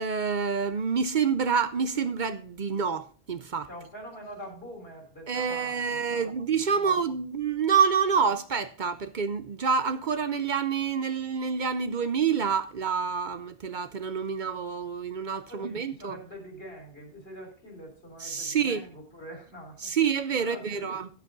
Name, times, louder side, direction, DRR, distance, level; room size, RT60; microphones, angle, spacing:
voice 1, 0.0-3.7 5.3-16.2 18.2-18.8 19.8-21.1, right 6 dB, 55° right, 0.7 m, -27 dB
voice 2, 3.7-7.0 15.5-19.9 20.4-20.9, equal, 70° left, 3.9 m, -45 dB
11.0 x 8.4 x 3.9 m
omnidirectional pair, 1.0 m